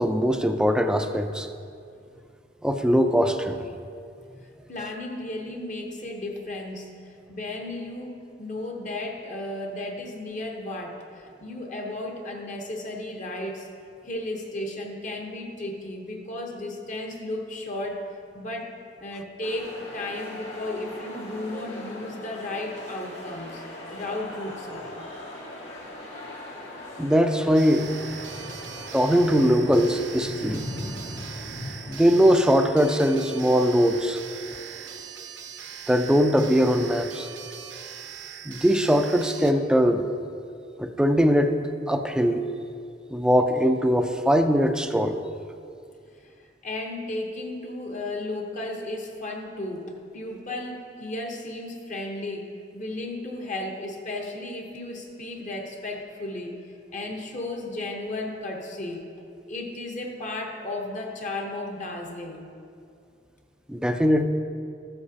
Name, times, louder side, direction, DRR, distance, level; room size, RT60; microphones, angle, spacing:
voice 1, 0.0-1.5 2.6-3.7 27.0-27.9 28.9-30.6 31.9-34.2 35.9-37.3 38.5-40.1 40.8-41.6 41.9-42.4 43.1-45.2 63.7-64.2, equal, 5° right, 7 dB, 0.4 m, -21 dB
voice 2, 4.7-13.7 14.0-18.0 18.3-18.7 19.0-25.1 46.2-46.3 46.6-56.6 56.9-59.0 59.5-62.5, left 2 dB, 45° left, 1 dB, 1.0 m, -34 dB
sound 1, 19.4-35.0, left 1 dB, 80° left, 2.0 m, -40 dB
sound 2, 27.5-39.5, right 8 dB, 70° right, 0.7 m, -41 dB
13.5 x 7.8 x 2.8 m, 2.4 s
head